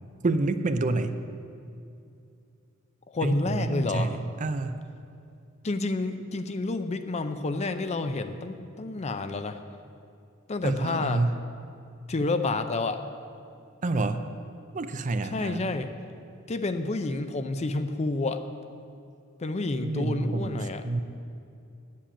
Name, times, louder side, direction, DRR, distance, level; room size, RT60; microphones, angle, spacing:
voice 1, 0.2-1.2 3.2-4.8 10.6-11.4 13.8-14.2 14.7-15.7 19.8-21.0, right 2 dB, 35° right, 10 dB, 0.5 m, -28 dB
voice 2, 3.1-4.2 5.6-9.6 10.5-11.2 12.1-13.0 15.2-15.9 16.5-18.4 19.4-20.8, left 2 dB, 30° left, 9 dB, 0.5 m, -29 dB
8.9 x 7.6 x 8.6 m, 2.6 s
head